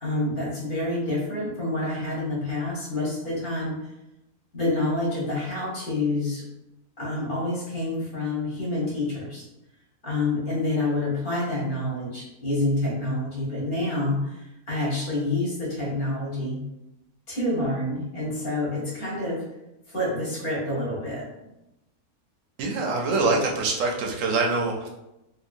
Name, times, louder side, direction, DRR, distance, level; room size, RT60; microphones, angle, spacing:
voice 1, 0.0-3.8 4.5-6.4 7.0-9.4 10.0-16.6 17.3-19.4 19.9-21.3, left 2 dB, 40° left, -5 dB, 1.0 m, -28 dB
voice 2, 22.6-24.9, right 3 dB, 65° right, 0 dB, 0.9 m, -24 dB
2.8 x 2.6 x 2.5 m, 0.92 s
omnidirectional pair, 1.6 m